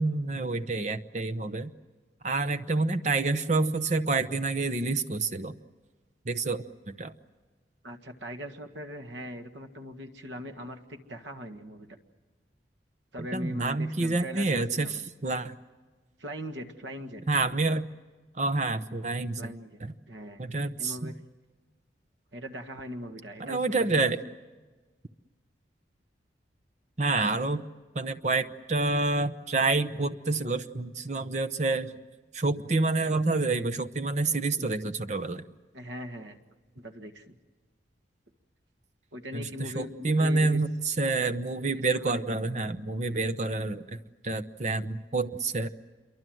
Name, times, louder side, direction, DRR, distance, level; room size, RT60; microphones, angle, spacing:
voice 1, 0.0-1.7 2.2-5.5 6.2-7.1 13.3-15.5 17.3-17.9 18.3-19.5 19.8-19.9 20.4-21.1 23.4-24.2 27.0-27.6 27.9-32.0 32.3-35.5 39.3-44.0 44.2-45.7, right 3 dB, 40° right, 11 dB, 0.9 m, -28 dB
voice 2, 7.8-12.0 13.1-15.0 16.2-17.2 19.1-19.8 20.1-21.1 22.3-24.1 35.7-36.4 36.8-37.4 39.1-40.6 41.7-42.2, equal, 75° right, 7 dB, 1.8 m, -40 dB
27.5 x 23.5 x 7.8 m, 1.3 s
head